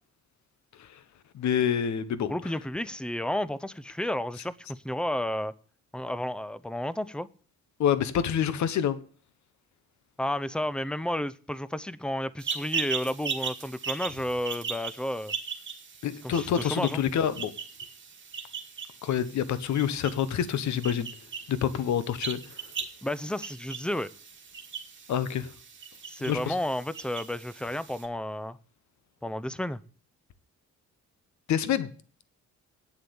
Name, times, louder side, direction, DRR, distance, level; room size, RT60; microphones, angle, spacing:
voice 1, 1.3-2.3 7.8-9.0 16.0-17.5 19.0-21.1 21.5-22.5 25.1-25.5 26.3-26.5 31.5-31.9, left 9 dB, 70° left, 1.2 m, -27 dB
voice 2, 2.3-5.5 5.9-7.3 10.2-15.3 16.2-17.0 23.0-24.1 26.1-28.6 29.2-29.8, left 1 dB, 5° left, 0.6 m, -32 dB
sound 1, 12.4-28.1, right 6 dB, 40° right, 2.2 m, -39 dB
8.8 x 7.9 x 8.7 m
cardioid pair, 90°, 30 cm